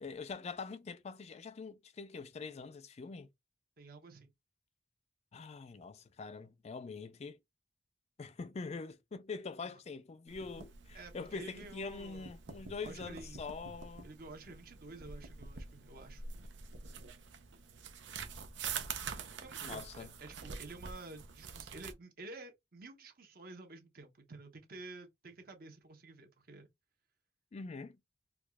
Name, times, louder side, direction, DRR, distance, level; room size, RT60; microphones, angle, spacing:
voice 1, 0.0-3.3 5.3-7.4 8.2-14.1 19.6-20.1 27.5-28.0, left 4 dB, 35° left, 0.4 m, -44 dB
voice 2, 3.8-4.3 10.9-12.3 12.8-13.4 14.0-16.2 19.4-26.7, right 2 dB, 55° right, 1.0 m, -51 dB
sound 1, 10.3-21.9, right 6 dB, 90° right, 0.6 m, -46 dB
4.6 x 2.4 x 2.2 m
head